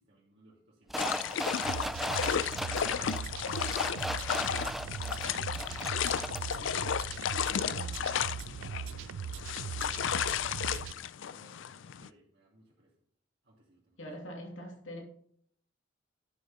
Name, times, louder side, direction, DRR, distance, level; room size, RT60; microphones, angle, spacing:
voice 1, 0.0-7.3 7.6-12.9 13.4-14.0, right 1 dB, 60° right, 2.8 m, -61 dB
sound 1, 0.9-6.6 6.9-7.0, equal, ahead, 0.3 m, -38 dB
sound 2, 1.0-12.1, left 8 dB, 70° left, 0.4 m, -33 dB
sound 3, 1.6-10.9, right 7 dB, 85° right, 0.3 m, -40 dB
voice 2, 7.5-7.9 14.0-15.0, equal, 85° left, 2.6 m, -43 dB
11.5 x 6.4 x 4.2 m
head